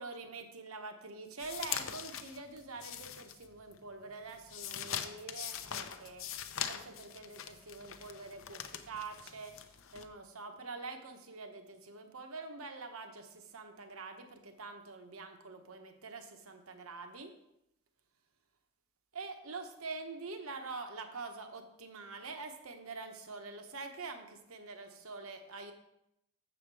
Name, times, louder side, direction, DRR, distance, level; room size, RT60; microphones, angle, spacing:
voice 1, 0.0-6.3 6.7-17.3 19.1-25.7, right 3 dB, 75° right, 6 dB, 0.9 m, -45 dB
sound 1, 1.4-3.8 4.1-10.1, left 9 dB, 65° left, 0.6 m, -42 dB
7.1 x 7.0 x 4.7 m, 0.82 s
head